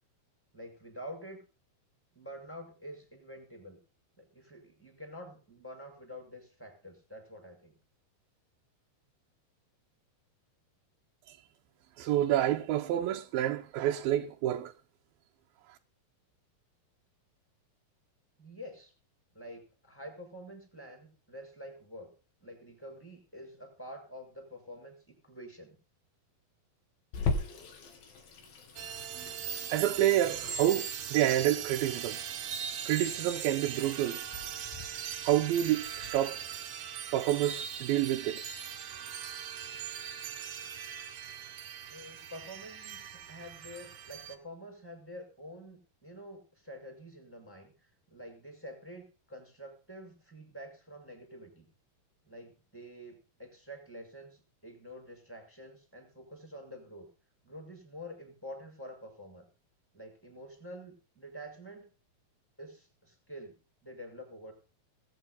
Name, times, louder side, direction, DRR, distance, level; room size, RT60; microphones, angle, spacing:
voice 1, 0.5-1.4 2.1-3.8 4.2-7.7 18.4-18.9 19.3-22.1 22.4-25.8 41.9-51.7 52.2-57.1 57.4-59.5 59.9-61.9 62.6-63.5 63.8-64.5, equal, 5° left, 6.9 m, -48 dB
voice 2, 12.0-14.7 15.7-15.8 29.1-29.3 29.7-32.2 32.8-34.2 35.2-38.4, right 12 dB, 85° right, 2.7 m, -29 dB
Water tap faucet / Sink (filling or washing), 27.1-36.1, left 4 dB, 80° left, 4.2 m, -40 dB
sound 1, 28.8-44.4, right 8 dB, 65° right, 2.4 m, -40 dB
21.5 x 9.1 x 4.0 m
omnidirectional pair, 4.2 m